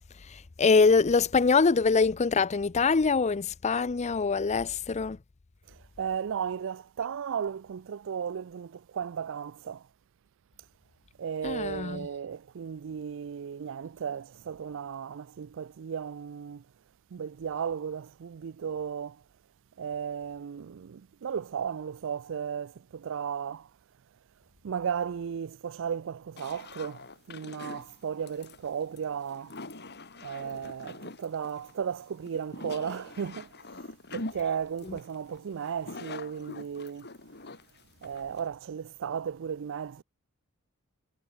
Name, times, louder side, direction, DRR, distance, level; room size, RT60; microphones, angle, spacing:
voice 1, 0.6-5.2 11.4-12.1 34.8-35.0, left 4 dB, 30° left, 0.5 m, -24 dB
voice 2, 6.0-9.8 11.2-16.6 17.1-19.2 19.8-23.7 24.6-29.6 30.2-33.5 34.1-37.1 38.0-40.0, right 7 dB, 60° right, 0.4 m, -35 dB
sound 1, 26.4-38.5, left 2 dB, 50° left, 2.6 m, -44 dB
head